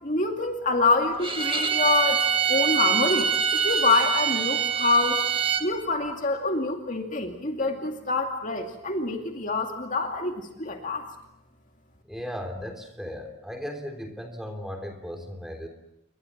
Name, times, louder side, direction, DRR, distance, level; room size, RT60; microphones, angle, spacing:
voice 1, 0.0-2.2 2.5-5.2 5.6-11.0, left 3 dB, 35° left, 4 dB, 2.5 m, -26 dB
Bowed string instrument, 1.2-5.7, right 8 dB, 25° right, 1.7 m, -25 dB
voice 2, 12.0-15.7, equal, ahead, 4 dB, 3.4 m, -36 dB
29.0 x 23.5 x 7.4 m, 0.85 s
head